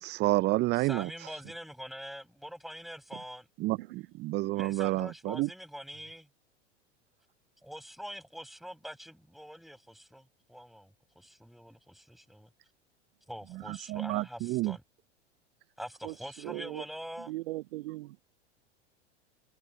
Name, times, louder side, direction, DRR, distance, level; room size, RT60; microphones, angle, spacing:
voice 1, 0.0-1.1 3.6-5.5 13.9-14.8, right 19 dB, 30° right, 0.6 m, -29 dB
voice 2, 0.7-3.5 4.6-6.3 7.6-12.5 13.3-14.8 15.8-17.3, equal, ahead, 7.3 m, -44 dB
voice 3, 3.8-4.1 16.0-16.8 17.3-18.2, right 18 dB, 55° right, 0.8 m, -39 dB
figure-of-eight pair, 85°, 34 cm